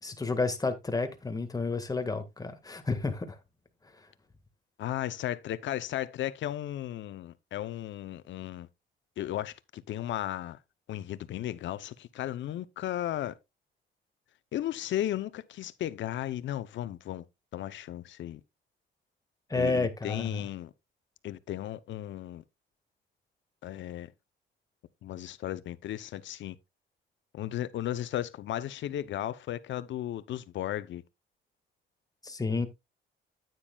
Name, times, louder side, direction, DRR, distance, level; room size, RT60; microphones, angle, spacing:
voice 1, 0.0-3.4 19.5-20.4 32.2-32.7, left 3 dB, 20° left, 1.7 m, -31 dB
voice 2, 4.8-8.7 9.2-10.6 10.9-13.3 14.5-17.2 17.5-18.4 19.5-20.7 21.2-22.4 23.6-24.1 25.0-26.6 27.3-31.0, left 12 dB, 70° left, 0.7 m, -35 dB
9.7 x 9.1 x 2.3 m
cardioid pair, 90°, 20 cm